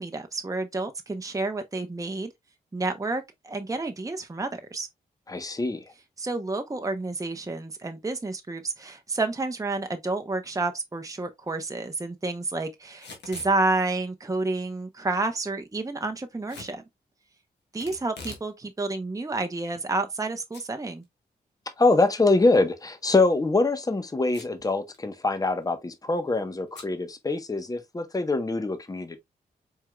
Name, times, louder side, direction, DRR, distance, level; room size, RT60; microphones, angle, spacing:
voice 1, 0.0-2.3 2.7-4.9 6.2-16.8 17.7-21.0, right 3 dB, 20° right, 0.7 m, -30 dB
voice 2, 5.3-5.8 21.8-29.2, left 3 dB, 20° left, 0.8 m, -24 dB
Packing tape duct tape / Tearing, 12.9-13.5 16.5-16.7 17.8-18.5 18.9-19.0 19.6-20.3 20.5-20.6 21.0-21.1 23.1-23.4 24.3-24.6 24.9-25.0 25.3-25.6 26.7-26.9, left 4 dB, 80° left, 1.3 m, -44 dB
4.5 x 3.7 x 2.2 m
supercardioid pair, 45°, 18 cm